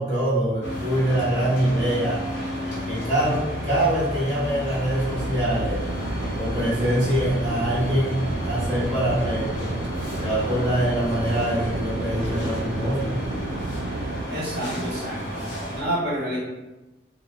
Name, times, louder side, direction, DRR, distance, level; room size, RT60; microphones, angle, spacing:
voice 1, 0.0-2.2 2.9-5.8 6.3-9.8 10.2-13.1, right 1 dB, 25° right, -9 dB, 1.1 m, -24 dB
sound 1, 0.6-15.8, equal, 85° left, 0.8 m, -31 dB
sound 2, 5.1-14.3, right 2 dB, 85° right, 0.3 m, -32 dB
voice 2, 14.3-15.4 15.7-16.4, right 1 dB, 60° right, -7 dB, 0.9 m, -28 dB
3.7 x 2.0 x 2.3 m, 1.1 s
head